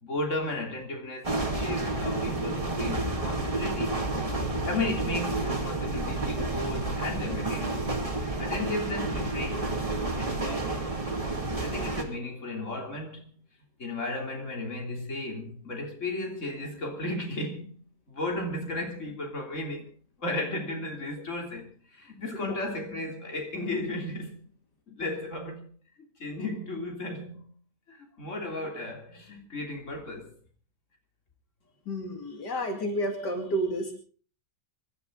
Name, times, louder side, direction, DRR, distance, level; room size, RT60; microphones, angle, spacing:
voice 1, 0.0-4.0 4.7-7.9 8.4-9.9 10.2-10.9 11.6-13.3 13.8-17.8 18.1-19.9 20.2-24.5 24.9-25.7 26.2-27.5 27.9-30.3, left 2 dB, 45° left, 3.6 m, -34 dB
sound 1, 1.2-12.0, right 2 dB, 20° right, 2.3 m, -30 dB
voice 2, 31.9-33.9, equal, 75° left, 2.9 m, -30 dB
25.5 x 12.5 x 3.9 m
omnidirectional pair, 1.8 m